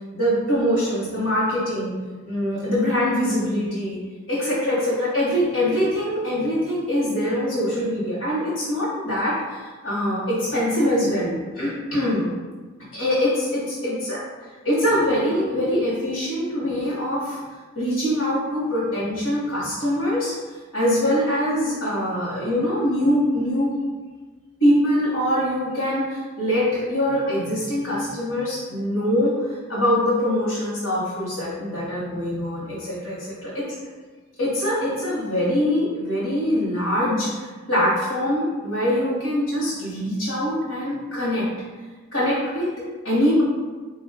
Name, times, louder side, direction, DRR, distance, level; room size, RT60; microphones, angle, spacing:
voice 1, 0.1-2.0 2.3-4.0 4.3-12.3 12.9-14.2 14.6-17.4 17.7-20.3 20.7-23.7 24.6-33.7 34.4-41.5 42.1-42.7 43.0-43.4, equal, 85° left, -8 dB, 1.0 m, -23 dB
3.4 x 2.2 x 3.4 m, 1.3 s
head